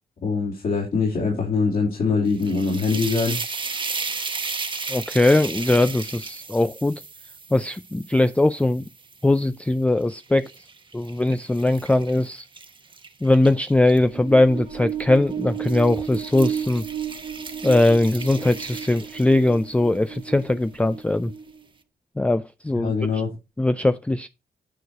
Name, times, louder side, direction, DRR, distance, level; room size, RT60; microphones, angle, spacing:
voice 1, 0.2-3.4 22.8-23.4, left 4 dB, 60° left, 3.0 m, -23 dB
sound 1, 2.3-9.5 10.0-14.0 14.9-15.2 15.5-19.7, right 4 dB, 30° right, 1.1 m, -35 dB
voice 2, 4.9-7.0 7.5-8.8 9.2-10.5 10.9-12.5 13.2-16.8 17.6-21.3 22.2-23.2 23.6-24.3, left 2 dB, 10° left, 0.4 m, -20 dB
sound 2, 14.1-21.6, right 8 dB, 45° right, 0.8 m, -33 dB
9.4 x 4.7 x 4.7 m
cardioid pair, 90°, 16 cm